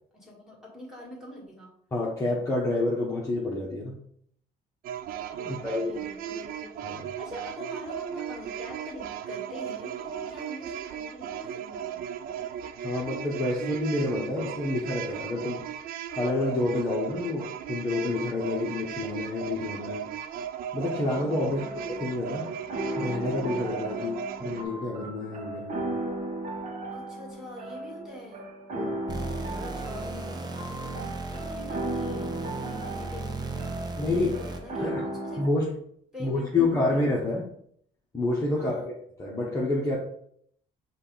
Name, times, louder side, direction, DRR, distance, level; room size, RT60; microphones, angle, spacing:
voice 1, 0.1-1.7 5.4-12.2 21.4-21.9 23.9-24.2 26.9-28.5 29.4-35.5 36.1-37.1 38.6-38.9, left 1 dB, 5° right, -3 dB, 1.9 m, -44 dB
voice 2, 1.9-4.0 5.4-5.9 6.8-7.0 12.8-15.6 16.1-20.1 20.7-21.6 22.0-22.5 23.0-25.9 28.7-29.1 34.0-34.3 34.8-35.0 35.4-35.7 36.2-37.5 38.1-40.0, left 2 dB, 20° left, -4 dB, 1.0 m, -28 dB
sound 1, 4.8-24.7, right 9 dB, 60° right, 0.4 m, -37 dB
sound 2, 21.1-35.5, right 1 dB, 40° right, 1.1 m, -36 dB
sound 3, 29.1-34.8, right 3 dB, 25° right, 0.7 m, -36 dB
5.2 x 2.5 x 3.9 m, 0.67 s
cardioid pair, 110°, 17 cm